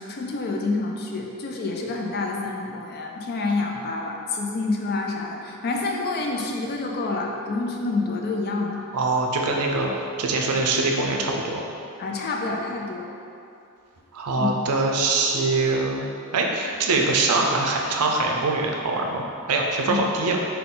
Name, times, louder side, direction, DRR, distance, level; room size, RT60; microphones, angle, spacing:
voice 1, 0.0-8.8 12.0-13.1 14.4-14.5 19.9-20.1, left 3 dB, 45° left, 1 dB, 0.4 m, -28 dB
voice 2, 8.9-11.6 14.1-16.1 16.3-20.4, right 3 dB, 80° right, 0 dB, 0.5 m, -23 dB
3.9 x 2.3 x 3.7 m, 2.5 s
head